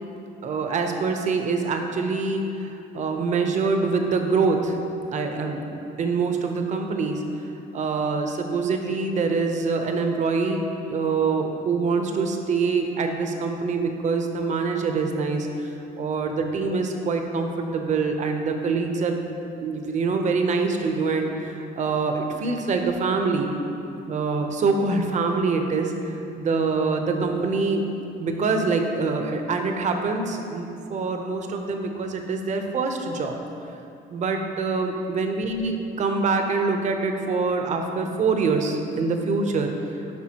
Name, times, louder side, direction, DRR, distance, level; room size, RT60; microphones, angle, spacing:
voice 1, 0.4-4.8 5.1-7.2 7.7-19.2 19.6-23.5 24.1-27.9 28.2-33.4 34.1-40.1, right 4 dB, 45° right, 4 dB, 0.8 m, -25 dB
10.5 x 5.6 x 2.9 m, 2.7 s
cardioid pair, 110°, 17 cm